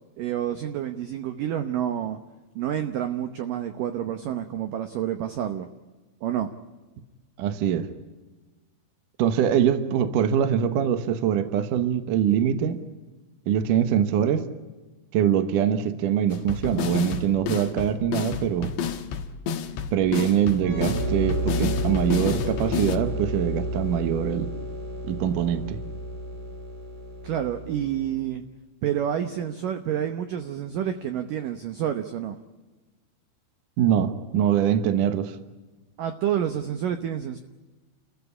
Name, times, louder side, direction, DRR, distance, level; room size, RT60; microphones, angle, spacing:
voice 1, 0.2-2.2 2.6-5.7 6.2-6.5 27.2-28.4 28.8-32.4 36.0-37.4, right 10 dB, 90° right, 8 dB, 1.9 m, -28 dB
voice 2, 7.4-7.9 9.2-12.8 13.5-14.5 15.1-18.7 19.9-24.5 25.0-25.8 33.8-35.4, right 9 dB, 70° right, 10 dB, 2.0 m, -23 dB
sound 1, 16.3-23.0, left 7 dB, 70° left, 3.4 m, -30 dB
sound 2, 20.6-28.1, equal, 50° right, 6.0 m, -31 dB
29.5 x 14.5 x 9.9 m, 1.2 s
omnidirectional pair, 5.4 m